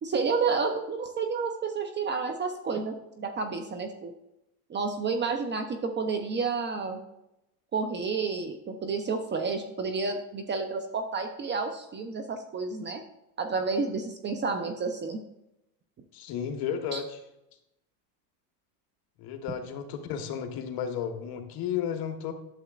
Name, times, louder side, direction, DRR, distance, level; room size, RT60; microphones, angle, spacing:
voice 1, 0.0-4.1 4.7-7.0 7.7-13.0 13.4-15.2 16.9-17.0, right 4 dB, 25° right, 6 dB, 0.6 m, -30 dB
voice 2, 16.1-17.2 19.2-22.3, left 8 dB, 50° left, 6 dB, 1.3 m, -33 dB
11.5 x 7.0 x 2.4 m, 0.87 s
supercardioid pair, 120°, 47 cm